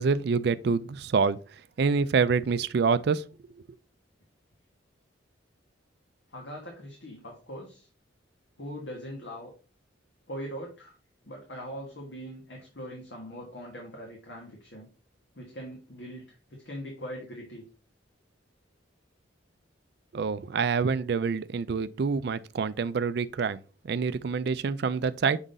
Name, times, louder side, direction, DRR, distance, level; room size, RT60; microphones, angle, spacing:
voice 1, 0.0-1.4 1.8-3.2 20.1-23.6 23.9-25.4, right 5 dB, 55° right, 0.4 m, -26 dB
voice 2, 6.3-7.9 8.6-9.5 10.3-10.9 11.2-14.9 15.3-16.2 16.5-17.6, equal, 65° left, 1.5 m, -41 dB
6.2 x 3.8 x 4.0 m
head